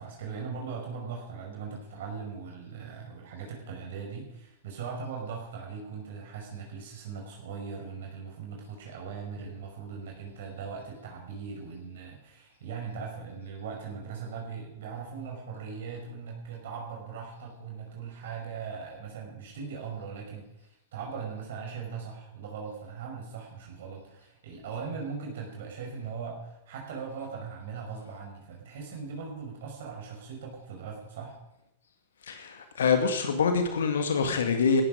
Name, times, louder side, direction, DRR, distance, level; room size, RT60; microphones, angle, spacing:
voice 1, 0.0-31.3, right 5 dB, 60° right, 0 dB, 5.2 m, -39 dB
voice 2, 32.2-34.8, left 5 dB, 65° left, 6 dB, 2.0 m, -25 dB
17.5 x 14.0 x 5.1 m, 0.89 s
figure-of-eight pair, 100°, 0 cm